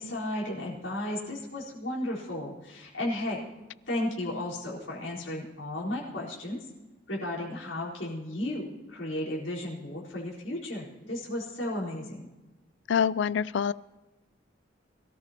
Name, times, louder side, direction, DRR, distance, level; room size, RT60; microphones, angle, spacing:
voice 1, 0.0-3.4 3.9-6.7 7.1-12.3, left 1 dB, 85° left, -5 dB, 4.2 m, -34 dB
voice 2, 12.9-13.7, left 7 dB, 70° left, 20 dB, 0.4 m, -25 dB
22.5 x 13.5 x 2.9 m, 1.2 s
head